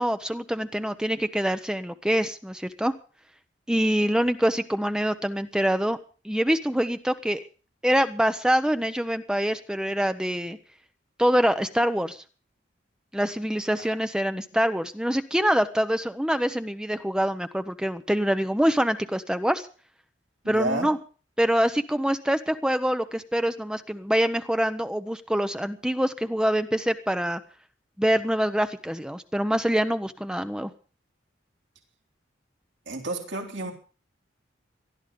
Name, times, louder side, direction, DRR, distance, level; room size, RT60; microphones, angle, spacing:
voice 1, 0.0-2.9 3.7-6.0 6.2-7.4 7.8-10.6 11.2-12.2 13.1-19.7 20.5-21.0 21.4-27.4 28.0-30.7, equal, 5° right, 9 dB, 0.8 m, -25 dB
voice 2, 20.4-20.9 32.9-33.7, right 2 dB, 75° right, 2 dB, 3.6 m, -30 dB
19.0 x 12.5 x 5.2 m, 0.38 s
head